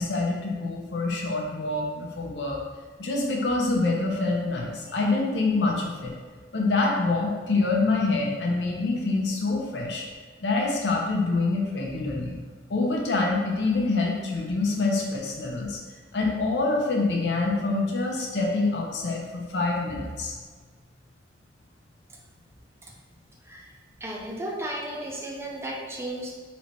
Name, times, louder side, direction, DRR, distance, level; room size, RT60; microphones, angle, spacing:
voice 1, 0.0-2.6 3.0-6.1 6.5-10.1 10.4-12.4 12.7-15.8 16.1-20.4, left 3 dB, 75° left, -1 dB, 0.8 m, -26 dB
voice 2, 24.0-26.3, right 1 dB, 15° right, -2 dB, 0.5 m, -34 dB
4.0 x 3.2 x 3.1 m, 1.5 s
head